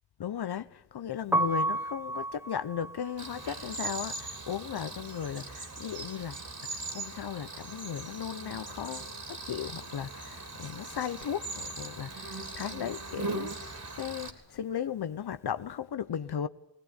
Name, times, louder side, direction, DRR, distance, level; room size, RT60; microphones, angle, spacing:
voice 1, 0.2-6.4 6.7-13.7 13.9-16.5, left 9 dB, 60° left, 1.0 m, -36 dB
Piano, 1.2-7.1 7.4-9.0 9.2-15.7, right 2 dB, 5° right, 1.1 m, -36 dB
Cricket, 3.2-14.3, right 3 dB, 40° right, 3.4 m, -40 dB
20.0 x 19.0 x 9.9 m
cardioid pair, 80°, 43 cm